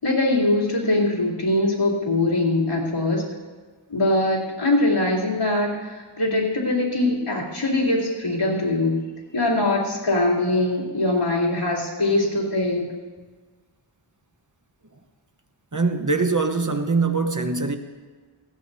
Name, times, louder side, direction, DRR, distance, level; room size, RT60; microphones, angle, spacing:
voice 1, 0.0-3.2 3.9-9.0 9.3-12.9, left 2 dB, 85° left, 3.3 m, -22 dB
voice 2, 15.7-17.8, right 4 dB, 35° right, 1.1 m, -22 dB
19.5 x 17.5 x 2.8 m
wide cardioid pair, 45°, 50 cm